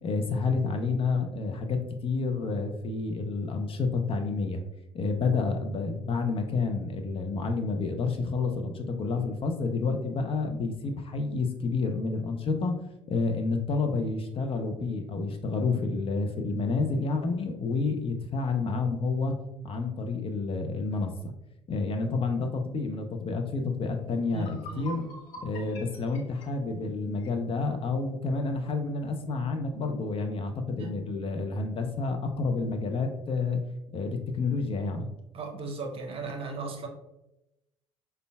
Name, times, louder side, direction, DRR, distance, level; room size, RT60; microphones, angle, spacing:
voice 1, 0.0-4.6 4.9-12.7 13.1-19.3 19.6-21.1 21.7-25.0 25.4-33.6 33.9-35.1, left 4 dB, 35° left, 5 dB, 0.5 m, -29 dB
sound 1, 23.9-24.0 24.3-27.4, equal, 55° left, 0.9 m, -45 dB
voice 2, 24.3-24.9 30.8-31.0 35.3-36.9, right 3 dB, 35° right, 3 dB, 0.8 m, -36 dB
5.0 x 2.2 x 2.2 m, 0.91 s
figure-of-eight pair, 60°, 16 cm